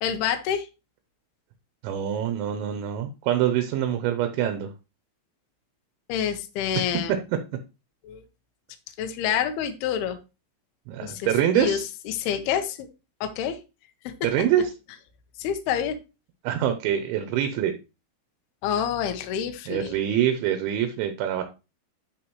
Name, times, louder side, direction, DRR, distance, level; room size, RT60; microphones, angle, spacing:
voice 1, 0.0-0.7 6.1-7.2 8.0-8.2 9.0-10.2 11.0-12.9 13.2-13.6 14.0-14.1 15.4-16.0 18.6-20.0, left 9 dB, 80° left, 7 dB, 2.3 m, -28 dB
voice 2, 1.8-4.7 10.9-11.8 14.2-14.7 16.4-17.8 19.7-21.4, right 10 dB, 80° right, 7 dB, 2.9 m, -25 dB
12.0 x 4.6 x 3.1 m, 0.28 s
omnidirectional pair, 5.8 m